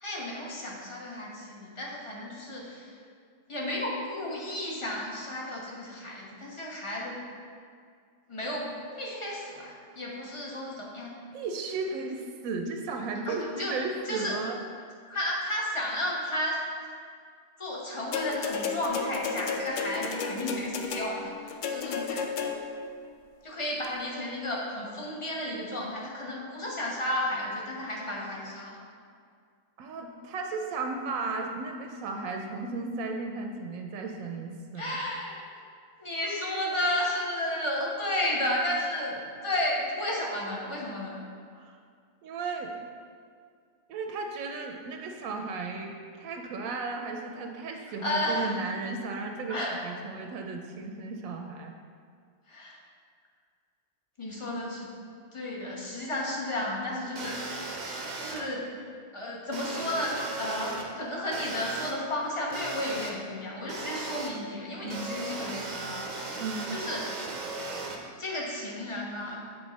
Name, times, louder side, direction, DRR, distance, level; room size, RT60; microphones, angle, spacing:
voice 1, 0.0-3.0 3.5-7.2 8.3-8.7 9.0-11.1 13.3-13.8 14.1-14.4 15.1-16.6 17.6-22.5 23.4-28.8 34.7-35.5 36.0-41.2 48.0-48.6 49.5-49.7 52.5-52.8 54.2-55.0 55.3-57.8 58.2-58.7 59.1-66.2 66.7-67.1 68.2-69.4, left 1 dB, 25° left, -4 dB, 0.9 m, -33 dB
voice 2, 11.3-14.6 29.8-35.0 41.5-41.8 42.2-42.8 43.9-51.7 64.8-65.1 66.4-66.8, right 4 dB, 90° right, 3 dB, 1.0 m, -35 dB
sound 1, 18.1-22.9 23.8-23.9, left 5 dB, 85° left, 0.4 m, -33 dB
sound 2, 57.2-58.4 59.5-60.8 61.3-61.9 62.5-63.1 63.7-64.3 64.9-68.0, right 3 dB, 45° right, 0.6 m, -37 dB
7.9 x 3.6 x 4.0 m, 2.2 s
omnidirectional pair, 1.4 m